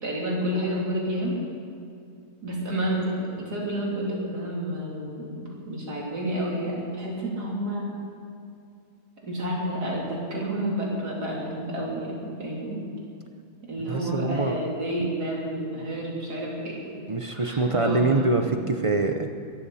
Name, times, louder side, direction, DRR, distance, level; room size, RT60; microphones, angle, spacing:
voice 1, 0.0-1.4 2.4-7.9 9.2-12.8 13.6-16.9 17.3-18.2, right 1 dB, 90° right, -4 dB, 3.8 m, -30 dB
voice 2, 13.9-14.6 15.0-15.1 17.1-19.3, right 3 dB, 35° right, 5 dB, 0.5 m, -24 dB
23.0 x 13.5 x 4.2 m, 2.4 s
omnidirectional pair, 1.6 m